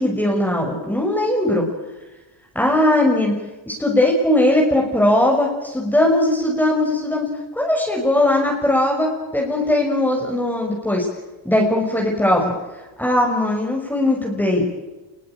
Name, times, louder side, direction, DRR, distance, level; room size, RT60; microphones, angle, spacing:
voice 1, 0.0-1.7 2.5-3.3 3.7-11.1 11.4-14.7, left 1 dB, 5° left, 0 dB, 5.9 m, -19 dB
28.0 x 21.5 x 9.1 m, 1.1 s
cardioid pair, 130°, 48 cm